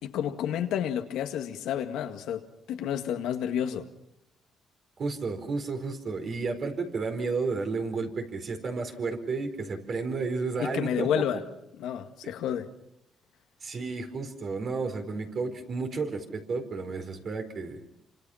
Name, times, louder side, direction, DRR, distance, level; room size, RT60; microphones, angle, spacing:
voice 1, 0.0-3.9 10.6-11.4 11.8-12.7, left 9 dB, 90° left, 1.9 m, -30 dB
voice 2, 5.0-11.2 13.6-17.8, right 4 dB, 50° right, 4.6 m, -32 dB
27.5 x 26.0 x 5.8 m
cardioid pair, 90°, 0 cm